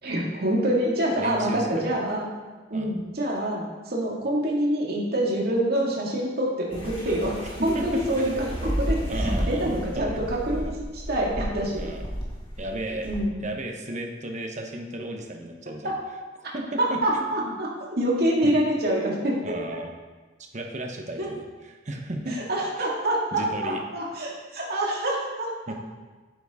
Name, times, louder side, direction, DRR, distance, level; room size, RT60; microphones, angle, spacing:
voice 1, 0.0-2.3 2.7-10.7 11.1-11.9 13.0-13.3 15.8-16.0 16.8-17.7 18.0-19.5 21.2-21.3 22.5-25.5, right 1 dB, 55° right, -3 dB, 2.2 m, -26 dB
voice 2, 1.2-1.9 2.7-2.9 7.6-8.4 9.1-10.2 10.5-10.8 11.8-12.1 12.6-13.1 13.4-15.9 16.5-17.6 18.4-18.6 19.4-19.9 20.5-22.4 22.8-22.9 23.3-23.8 25.7-25.8, right 1 dB, 40° right, 3 dB, 1.1 m, -34 dB
sound 1, 6.7-13.2, equal, 30° left, 2.1 m, -32 dB
9.2 x 7.9 x 3.7 m, 1.3 s
head